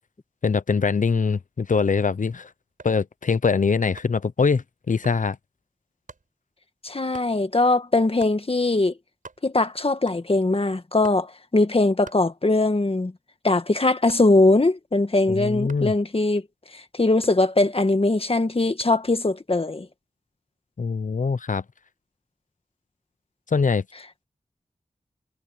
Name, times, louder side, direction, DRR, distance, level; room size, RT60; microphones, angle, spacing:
voice 1, 0.4-2.5 2.8-5.4 15.3-15.9 20.8-21.6 23.5-23.8, left 5 dB, 70° left, 0.8 m, -23 dB
sound 1, 2.6-3.1 4.0-4.3 5.0-5.3 6.1-6.3 7.1-7.4 8.2-8.4 8.9-9.0 9.1-9.7 10.1-10.5 11.0-11.3 12.0-12.8 13.2-14.6 15.7-16.0 17.2-17.9 18.8-19.1, right 4 dB, 75° right, 5.6 m, -47 dB
voice 2, 6.8-8.9 9.4-13.1 13.4-16.4 16.7-19.9, left 2 dB, 45° left, 1.7 m, -21 dB
wide cardioid pair, 50°, 14 cm